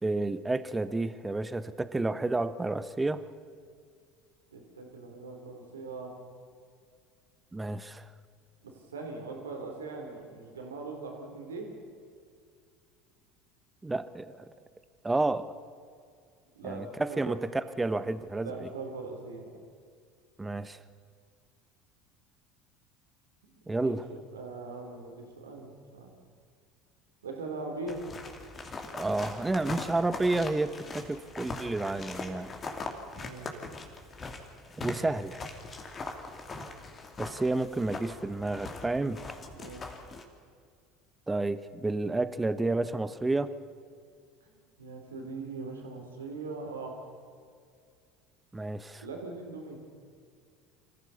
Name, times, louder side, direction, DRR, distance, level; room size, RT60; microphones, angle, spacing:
voice 1, 0.0-3.2 7.5-8.1 13.8-14.5 15.0-15.5 16.6-18.7 20.4-20.8 23.7-24.1 28.9-32.5 34.8-35.5 37.2-39.2 41.3-43.5 48.5-49.0, right 2 dB, 15° right, 14 dB, 1.1 m, -30 dB
voice 2, 4.5-6.1 8.6-11.7 16.6-17.4 18.4-19.5 23.5-26.1 27.2-28.0 33.2-33.5 39.5-40.0 44.4-44.5 44.8-47.0 49.0-49.8, right 3 dB, 85° right, 2 dB, 3.6 m, -41 dB
sound 1, 27.9-40.2, left 3 dB, 30° left, 2.8 m, -41 dB
26.0 x 15.0 x 7.1 m, 2.2 s
hypercardioid pair, 75°, 0 cm